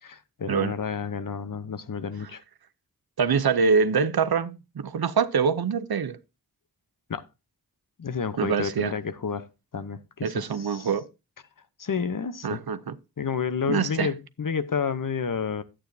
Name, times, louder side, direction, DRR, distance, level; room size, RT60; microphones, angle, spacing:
voice 1, 0.0-2.4 7.1-7.2 8.0-9.5 9.7-10.9 11.8-12.6 13.2-15.6, left 6 dB, 60° left, 0.8 m, -30 dB
voice 2, 3.2-6.2 8.4-8.9 10.2-11.1 12.4-12.9 13.7-14.1, right 5 dB, 85° right, 0.7 m, -24 dB
11.5 x 8.7 x 2.7 m
wide cardioid pair, 50°, 36 cm